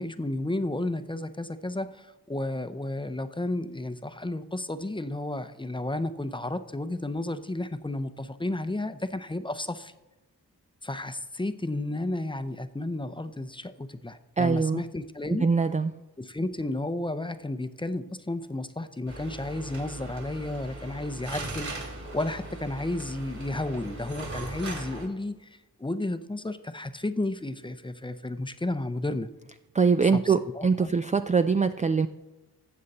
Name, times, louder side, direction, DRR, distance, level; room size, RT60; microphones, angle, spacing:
voice 1, 0.0-9.9 10.8-15.5 16.2-29.3 30.0-30.9, left 2 dB, 10° left, 11 dB, 0.7 m, -32 dB
voice 2, 14.4-14.8 15.4-15.9 29.7-32.1, right 5 dB, 20° right, 10 dB, 0.3 m, -23 dB
sound 1, 19.1-25.1, right 2 dB, 45° right, 3.1 m, -39 dB
13.0 x 7.5 x 4.2 m, 1.1 s
cardioid pair, 50°, 40 cm